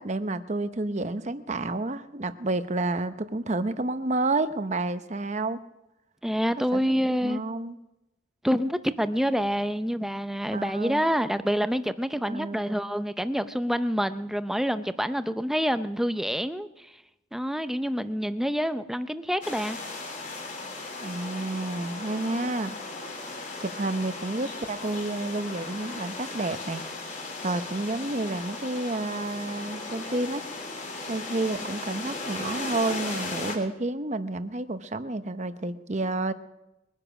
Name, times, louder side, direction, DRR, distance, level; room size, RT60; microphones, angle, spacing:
voice 1, 0.0-5.6 6.6-6.8 7.2-7.8 10.5-11.0 12.2-12.6 21.0-22.7 23.6-26.8 27.4-30.5 31.1-36.3, right 2 dB, 35° right, 11 dB, 0.8 m, -30 dB
voice 2, 6.2-7.4 8.4-16.9 17.3-19.8, equal, ahead, 11 dB, 0.5 m, -27 dB
sound 1, 19.4-33.5, left 3 dB, 40° left, 3.5 m, -37 dB
22.0 x 10.0 x 6.0 m, 0.97 s
head